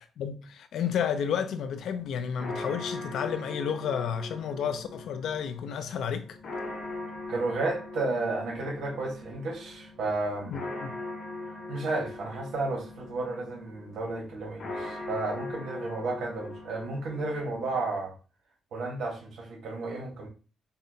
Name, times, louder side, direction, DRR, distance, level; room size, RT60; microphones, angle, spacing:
voice 1, 0.2-6.4 10.5-10.9, left 7 dB, 75° left, 0.4 m, -31 dB
sound 1, 1.3-17.9, left 2 dB, 50° left, 0.9 m, -41 dB
voice 2, 7.3-10.6 11.7-18.1 18.7-20.3, right 3 dB, 80° right, 1.2 m, -32 dB
5.4 x 2.2 x 2.7 m
cardioid pair, 155°, 0 cm